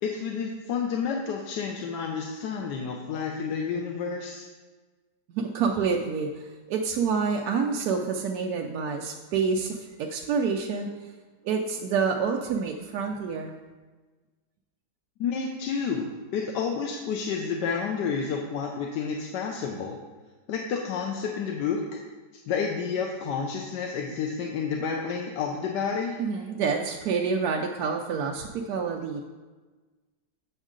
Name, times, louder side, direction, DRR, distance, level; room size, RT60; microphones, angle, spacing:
voice 1, 0.0-4.5 15.2-20.0 20.5-22.0 22.5-26.2, left 6 dB, 85° left, 1 dB, 1.3 m, -30 dB
voice 2, 5.3-6.4 6.7-10.9 11.4-13.5 26.2-29.2, right 5 dB, 75° right, 1 dB, 1.0 m, -28 dB
8.0 x 6.3 x 3.7 m, 1.3 s
omnidirectional pair, 1.8 m